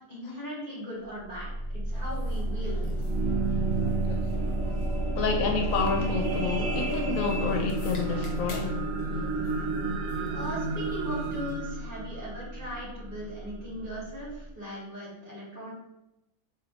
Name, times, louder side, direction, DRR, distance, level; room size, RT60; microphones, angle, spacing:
voice 1, 0.1-2.9 10.3-15.7, equal, 30° right, -8 dB, 1.4 m, -39 dB
sound 1, 1.0-14.5, right 1 dB, 50° right, 1.0 m, -34 dB
sound 2, 1.9-11.6, left 1 dB, 50° left, 0.3 m, -46 dB
sound 3, 2.7-13.2 13.8-13.9, right 3 dB, 75° right, 0.9 m, -32 dB
voice 2, 5.1-8.7, left 4 dB, 80° left, 2 dB, 1.1 m, -29 dB
4.3 x 3.0 x 2.7 m, 0.90 s
omnidirectional pair, 1.4 m